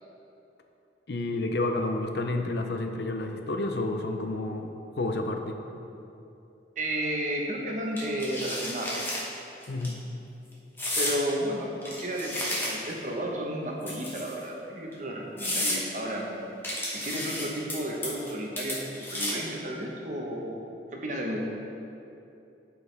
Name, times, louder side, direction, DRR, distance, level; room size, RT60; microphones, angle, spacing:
voice 1, 1.1-5.6 9.7-10.0, left 2 dB, 60° left, 4 dB, 0.5 m, -30 dB
voice 2, 6.8-9.0 11.0-16.3 16.9-20.6 20.9-21.4, right 1 dB, 40° right, -1 dB, 0.9 m, -32 dB
sound 1, 8.0-9.2 9.6-9.9 10.8-11.2 11.8-13.0 13.8-14.4 14.9-15.0 15.4-15.8 16.6-17.7 18.0-18.3 18.6-19.5, left 1 dB, 10° left, 1.1 m, -32 dB
12.0 x 4.8 x 3.3 m, 2.8 s
head